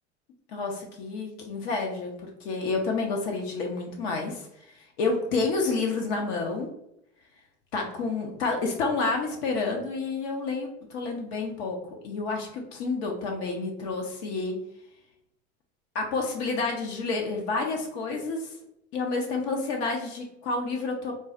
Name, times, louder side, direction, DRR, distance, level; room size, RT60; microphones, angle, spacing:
voice 1, 0.5-2.1 2.4-4.5 5.0-6.7 7.7-11.8 12.0-14.6 15.9-18.5 18.9-21.1, left 3 dB, 70° left, 1 dB, 0.8 m, -29 dB
3.9 x 2.0 x 2.4 m, 0.76 s
hypercardioid pair, 90°, 33 cm